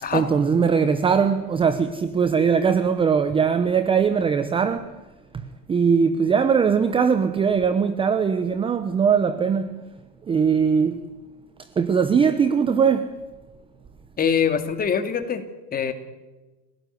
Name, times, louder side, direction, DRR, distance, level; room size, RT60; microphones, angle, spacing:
voice 1, 0.1-4.9 5.7-9.7 10.3-11.0 11.8-13.1, right 6 dB, 10° right, 0.9 m, -20 dB
voice 2, 14.2-15.4 15.7-15.9, left 7 dB, 20° left, 2.5 m, -23 dB
29.0 x 17.5 x 9.4 m
hypercardioid pair, 130°, 48 cm